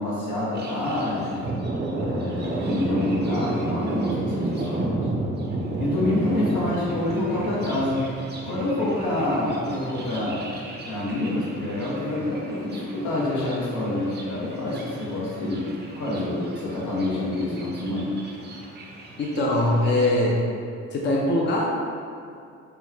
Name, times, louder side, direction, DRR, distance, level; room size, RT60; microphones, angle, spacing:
voice 1, 0.0-1.5 2.0-5.1 5.8-8.1 8.4-10.4 10.8-15.7 16.0-18.1, left 1 dB, 80° left, -7 dB, 1.1 m, -27 dB
Thunder, 0.5-20.1, right 2 dB, 35° right, 0.5 m, -32 dB
voice 2, 19.2-20.4 20.9-21.6, left 1 dB, 35° left, -3 dB, 0.5 m, -22 dB
4.4 x 2.2 x 2.7 m, 2.4 s
cardioid pair, 90°, 30 cm